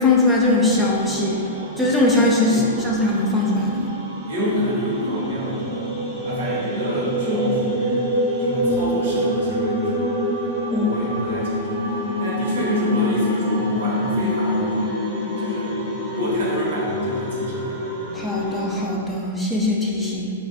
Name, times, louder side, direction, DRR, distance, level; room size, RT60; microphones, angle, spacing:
voice 1, 0.0-1.4 1.8-3.9 10.7-10.9 11.3-11.4 18.1-20.3, left 2 dB, 5° left, -3 dB, 0.4 m, -20 dB
sound 1, 0.6-18.8, equal, 25° right, 0.8 m, -27 dB
voice 2, 4.2-8.1 8.4-10.2 10.7-11.9 12.2-15.0 15.4-15.8 16.1-17.8, equal, 60° right, -5 dB, 0.8 m, -27 dB
2.5 x 2.1 x 3.9 m, 2.5 s
figure-of-eight pair, 110°, 0 cm